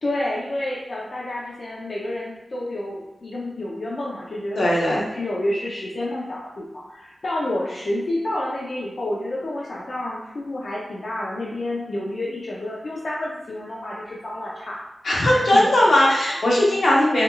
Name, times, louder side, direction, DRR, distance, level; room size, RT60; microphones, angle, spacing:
voice 1, 0.0-14.8 15.2-15.6, left 1 dB, 60° left, -5 dB, 0.6 m, -29 dB
voice 2, 4.6-5.1 15.0-17.2, left 1 dB, 85° left, -5 dB, 0.9 m, -18 dB
4.6 x 2.3 x 2.3 m, 0.96 s
wide cardioid pair, 95°, 0 cm